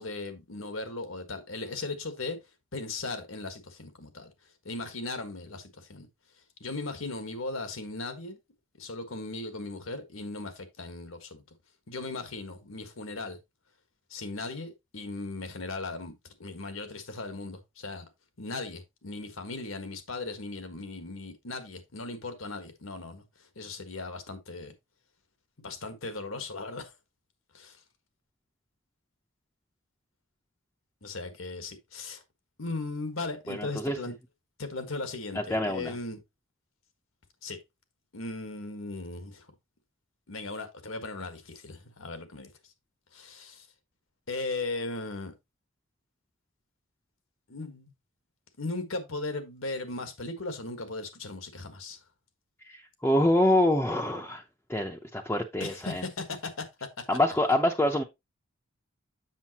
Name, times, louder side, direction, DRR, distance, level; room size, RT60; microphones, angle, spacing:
voice 1, 0.0-2.4 2.7-4.3 4.6-6.1 6.6-8.4 8.8-11.4 11.9-13.4 14.1-18.0 18.4-23.2 23.5-24.7 25.6-26.9 27.5-27.8 31.0-32.2 32.6-34.1 34.6-36.2 37.4-37.6 38.1-39.5 40.3-42.5 43.1-43.7 44.3-45.3 47.5-47.9 48.6-52.0 55.6-56.7 57.0-57.1, left 3 dB, 85° left, 1.5 m, -37 dB
voice 2, 33.5-34.0 35.3-35.9 52.6-54.4 54.7-56.0 57.1-58.0, left 1 dB, 10° left, 0.6 m, -26 dB
7.5 x 6.8 x 2.9 m
head